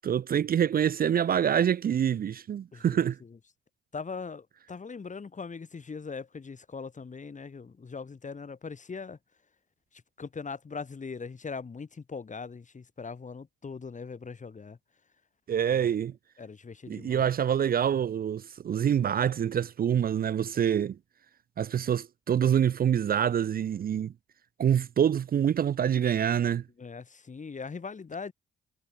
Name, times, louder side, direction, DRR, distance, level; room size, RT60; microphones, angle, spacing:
voice 1, 0.0-3.2 15.5-16.1 16.9-21.0 21.6-24.1 24.6-26.6, right 9 dB, 45° right, 0.5 m, -26 dB
voice 2, 2.7-3.4 3.9-9.2 10.2-14.8 15.7-15.9 16.4-17.3 26.8-28.3, left 5 dB, 40° left, 1.8 m, -40 dB
hypercardioid pair, 45°, 20 cm